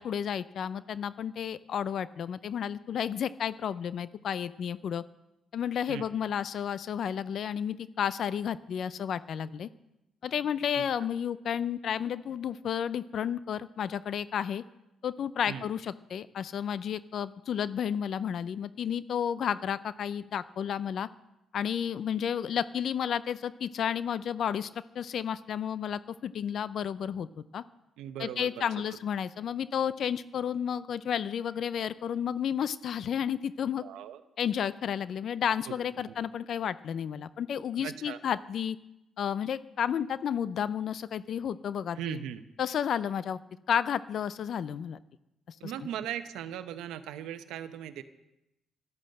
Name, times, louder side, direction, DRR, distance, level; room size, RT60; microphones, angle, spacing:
voice 1, 0.0-5.0 5.5-9.7 10.2-14.6 15.0-21.1 21.5-24.7 24.9-27.3 27.5-27.6 28.2-33.8 34.4-38.8 39.2-42.2 42.6-43.4 43.7-45.0 45.6-45.7, left 8 dB, 65° left, 16 dB, 0.5 m, -32 dB
voice 2, 28.0-28.6 33.8-34.2 35.7-35.8 37.8-38.2 42.0-42.4 45.6-48.0, right 10 dB, 90° right, 10 dB, 0.8 m, -38 dB
12.0 x 12.0 x 7.7 m, 0.91 s
cardioid pair, 90°, 0 cm